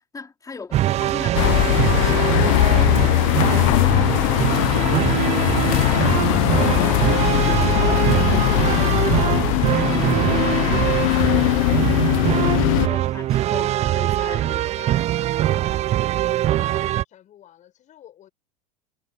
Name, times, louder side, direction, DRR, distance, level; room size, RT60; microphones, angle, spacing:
voice 1, 0.1-2.4 5.9-9.6 12.6-14.6, left 4 dB, 20° left, 3.9 m, -37 dB
sound 1, 0.7-17.0, right 14 dB, 35° right, 0.5 m, -22 dB
sound 2, 1.3-12.9, left 25 dB, 60° left, 0.6 m, -20 dB
voice 2, 14.2-16.8 17.1-18.3, left 11 dB, 40° left, 7.0 m, -50 dB
hypercardioid pair, 95°, 19 cm